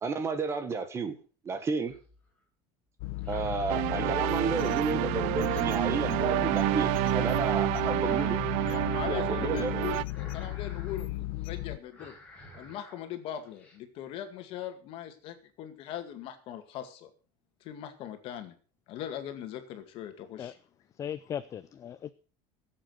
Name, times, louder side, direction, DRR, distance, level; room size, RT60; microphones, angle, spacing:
voice 1, 0.0-1.2 1.4-1.9 3.3-8.4 9.1-9.8, right 4 dB, 20° right, 10 dB, 1.5 m, -32 dB
sound 1, 1.9-2.3 3.1-4.7 4.9-6.3 7.1-7.7 8.0-9.7 10.0-11.1 11.4-11.6 11.9-13.0 13.3-13.8, equal, 10° left, 4.5 m, -50 dB
sound 2, 3.0-11.8, left 17 dB, 70° left, 1.0 m, -35 dB
sound 3, 3.7-10.0, right 20 dB, 65° right, 0.5 m, -29 dB
voice 2, 8.6-12.1 12.5-17.1 17.6-18.5 18.9-20.6, left 10 dB, 50° left, 8 dB, 2.1 m, -40 dB
voice 3, 21.0-22.1, left 9 dB, 25° left, 13 dB, 0.5 m, -37 dB
15.5 x 7.8 x 6.5 m, 0.39 s
cardioid pair, 160°, 12 cm